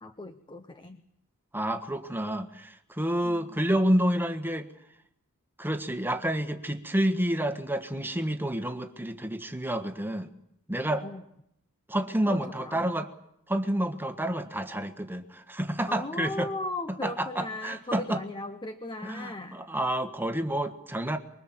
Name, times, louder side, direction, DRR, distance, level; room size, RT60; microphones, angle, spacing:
voice 1, 0.0-1.0 3.2-3.6 11.0-11.2 12.3-12.9 15.9-19.7, left 2 dB, 20° left, 9 dB, 1.0 m, -37 dB
voice 2, 1.5-4.7 5.6-10.3 10.7-11.0 11.9-13.1 13.5-16.5 17.0-18.2 19.0-21.2, right 1 dB, 10° right, 7 dB, 1.5 m, -29 dB
24.0 x 22.0 x 7.5 m, 0.77 s
head